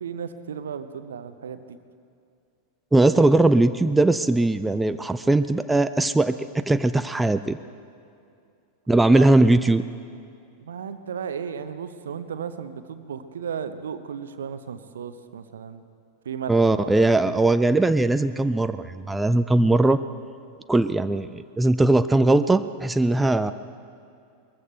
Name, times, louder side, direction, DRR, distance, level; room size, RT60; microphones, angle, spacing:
voice 1, 0.0-1.8 9.1-9.3 10.6-15.9 16.2-17.8, right 7 dB, 65° right, 11 dB, 0.8 m, -35 dB
voice 2, 2.9-7.6 8.9-9.8 16.5-20.0 20.7-23.5, right 2 dB, 5° right, 11 dB, 0.4 m, -20 dB
21.5 x 14.5 x 4.5 m, 2.4 s
figure-of-eight pair, 90°, 0 cm